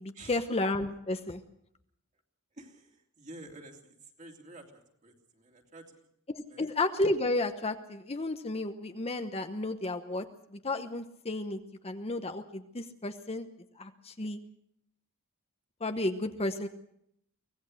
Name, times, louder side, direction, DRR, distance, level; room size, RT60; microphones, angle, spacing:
voice 1, 0.0-1.4 6.3-13.5 13.8-14.4 15.8-16.7, left 2 dB, 30° left, 7 dB, 0.9 m, -32 dB
voice 2, 2.5-6.0 6.5-6.7, right 2 dB, 35° right, 2 dB, 3.0 m, -50 dB
24.5 x 18.0 x 6.5 m, 0.75 s
head